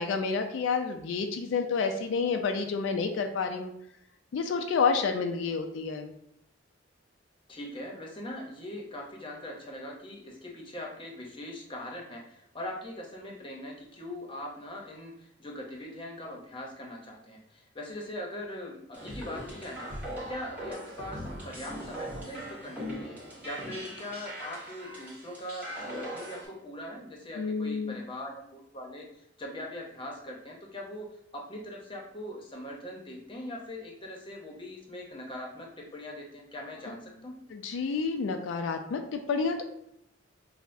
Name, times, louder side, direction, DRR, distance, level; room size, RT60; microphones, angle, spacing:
voice 1, 0.0-3.7 4.3-6.1 27.3-28.0 37.5-39.6, left 5 dB, 80° left, 5 dB, 0.3 m, -29 dB
voice 2, 7.5-19.9 20.2-23.2 23.4-31.1 31.5-37.3, left 1 dB, 25° left, -1 dB, 0.7 m, -41 dB
sound 1, 18.9-26.5, equal, 10° right, 1.2 m, -40 dB
5.6 x 2.1 x 2.5 m, 0.77 s
head